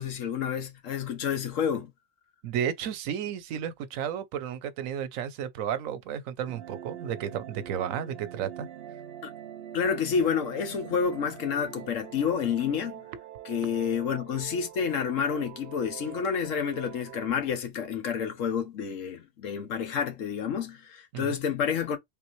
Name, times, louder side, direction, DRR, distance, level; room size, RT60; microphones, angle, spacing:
voice 1, 0.0-1.9 9.2-9.3 9.7-13.0 13.4-22.0, left 7 dB, 75° left, 1.2 m, -29 dB
voice 2, 2.4-8.7 21.1-21.4, right 9 dB, 85° right, 1.1 m, -33 dB
sound 1, 6.5-17.3, right 11 dB, 65° right, 0.6 m, -44 dB
3.7 x 3.5 x 3.0 m
omnidirectional pair, 1.3 m